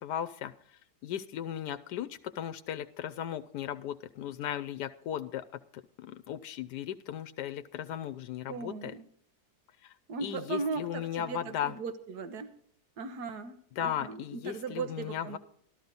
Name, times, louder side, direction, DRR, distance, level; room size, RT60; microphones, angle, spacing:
voice 1, 0.0-5.4 5.7-8.9 9.8-9.9 10.2-11.7 13.8-15.4, left 10 dB, 85° left, 10 dB, 1.2 m, -36 dB
voice 2, 8.5-9.1 10.1-12.6 13.0-15.4, right 4 dB, 75° right, 9 dB, 1.7 m, -38 dB
13.5 x 13.0 x 4.0 m, 0.63 s
omnidirectional pair, 1.7 m